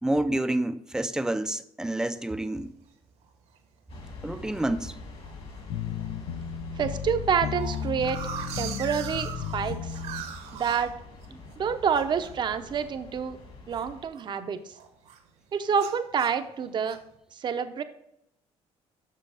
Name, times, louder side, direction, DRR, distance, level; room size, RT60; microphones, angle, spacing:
voice 1, 0.0-2.7 4.2-5.0, right 1 dB, 5° right, 0.5 m, -28 dB
sound 1, 2.0-2.4 2.9-3.0 3.2-3.6 3.9-4.6 5.2-5.6 5.9-6.1 6.3-6.4 6.7-11.6 11.9-14.4 14.7-15.3 15.7-17.1, right 8 dB, 80° right, 1.6 m, -41 dB
sound 2, 3.9-14.1, left 3 dB, 55° left, 2.1 m, -45 dB
sound 3, 5.7-10.2, left 8 dB, 80° left, 0.6 m, -34 dB
voice 2, 6.8-8.2 8.6-10.0 10.5-10.9 11.6-13.4 13.7-14.8 15.5-17.0 17.3-17.8, right 7 dB, 40° right, 0.8 m, -28 dB
7.6 x 6.4 x 4.9 m
cardioid pair, 125°, 12 cm